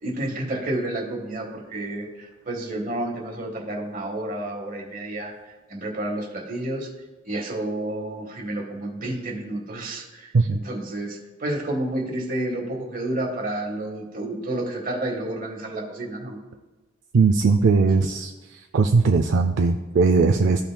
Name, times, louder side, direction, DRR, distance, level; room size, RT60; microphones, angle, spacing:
voice 1, 0.0-5.3 5.7-6.9 7.2-16.4, right 1 dB, 45° right, 1 dB, 1.4 m, -30 dB
voice 2, 17.1-18.3 18.7-20.6, right 4 dB, 65° right, 5 dB, 0.4 m, -19 dB
14.0 x 5.8 x 2.2 m, 1.2 s
head